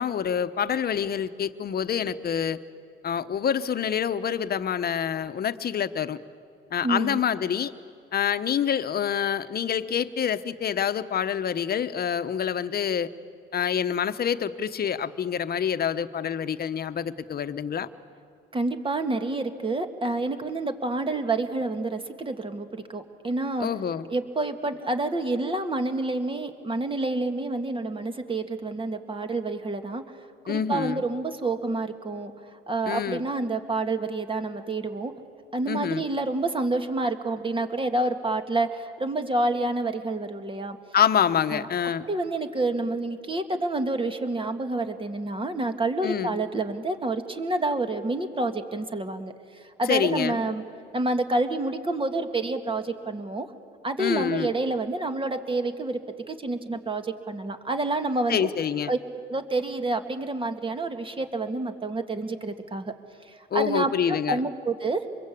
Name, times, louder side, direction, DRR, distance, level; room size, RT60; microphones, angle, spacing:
voice 1, 0.0-2.6 3.0-6.2 6.7-7.7 8.1-13.1 13.5-17.9 23.6-24.1 30.5-31.0 32.9-33.2 35.7-36.0 40.9-42.0 46.0-46.4 49.9-50.4 54.0-54.5 58.3-58.9 63.5-64.4, left 8 dB, 50° left, 12 dB, 1.0 m, -26 dB
voice 2, 6.8-7.2 18.5-23.7 24.1-30.0 30.4-32.3 32.7-35.1 35.5-40.8 41.5-41.7 42.1-49.3 49.8-50.6 50.9-53.5 53.8-58.5 58.9-59.0 59.3-62.9 63.3-65.0, right 2 dB, 25° right, 7 dB, 1.9 m, -28 dB
25.5 x 22.0 x 8.5 m, 2.4 s
cardioid pair, 90°, 20 cm